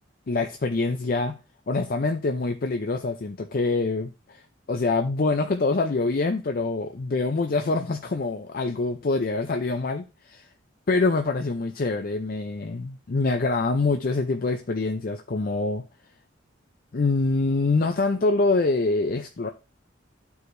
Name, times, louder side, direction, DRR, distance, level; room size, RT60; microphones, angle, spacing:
voice 1, 0.3-1.4 1.7-4.4 4.7-10.5 10.9-15.8 16.9-19.5, left 3 dB, 50° left, 0.5 m, -25 dB
11.5 x 4.8 x 2.6 m
head